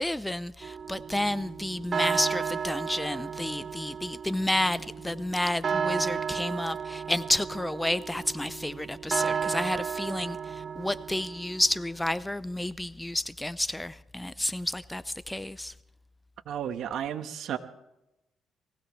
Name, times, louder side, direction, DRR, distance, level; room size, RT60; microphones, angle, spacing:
voice 1, 0.0-15.7, left 1 dB, 10° left, 0.5 m, -30 dB
sound 1, 0.6-11.8, right 6 dB, 45° right, 0.5 m, -33 dB
voice 2, 16.5-17.6, right 9 dB, 75° right, 1.3 m, -33 dB
22.0 x 16.0 x 3.2 m
cardioid pair, 90°, 0 cm